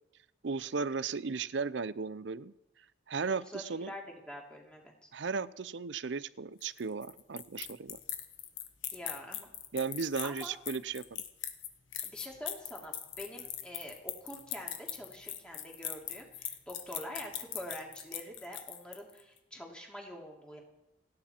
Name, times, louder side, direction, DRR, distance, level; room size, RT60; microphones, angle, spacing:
voice 1, 0.4-2.5 3.1-3.9 5.1-8.0 9.7-11.2, right 4 dB, 75° right, 17 dB, 0.6 m, -35 dB
voice 2, 3.3-5.1 8.9-9.5 10.2-10.5 12.0-20.6, equal, 5° left, -1 dB, 2.8 m, -46 dB
sound 1, 6.6-19.2, left 11 dB, 90° left, 1.2 m, -40 dB
29.0 x 9.9 x 4.5 m, 0.93 s
head